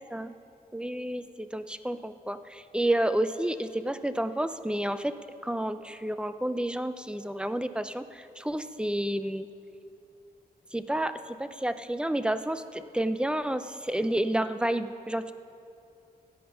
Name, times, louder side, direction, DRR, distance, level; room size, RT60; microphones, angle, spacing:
voice 1, 0.7-5.1 5.4-9.5 10.7-15.3, right 1 dB, 5° right, 11 dB, 0.4 m, -30 dB
16.5 x 8.7 x 5.5 m, 2.6 s
wide cardioid pair, 135°, 16 cm